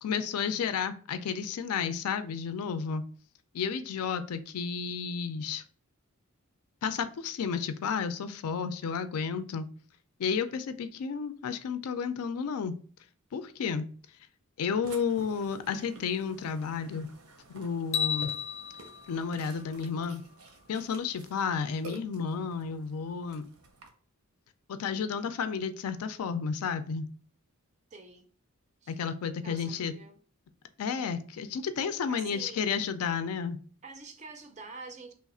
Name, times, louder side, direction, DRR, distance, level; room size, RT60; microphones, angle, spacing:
voice 1, 0.0-3.0 3.5-5.6 6.8-9.7 10.2-12.7 13.3-13.9 14.6-17.1 17.5-18.3 19.1-20.2 20.7-23.5 24.7-27.1 28.9-29.9 30.8-33.6, left 6 dB, 80° left, 0.4 m, -32 dB
Burping eructation, 14.8-23.9, right 2 dB, 75° right, 0.7 m, -51 dB
sound 1, 17.9-20.2, left 8 dB, 30° left, 0.5 m, -34 dB
voice 2, 27.9-28.3 28.8-28.9 29.4-30.2 32.1-32.7 33.8-35.1, right 3 dB, 30° right, 0.4 m, -47 dB
3.0 x 2.4 x 4.1 m
head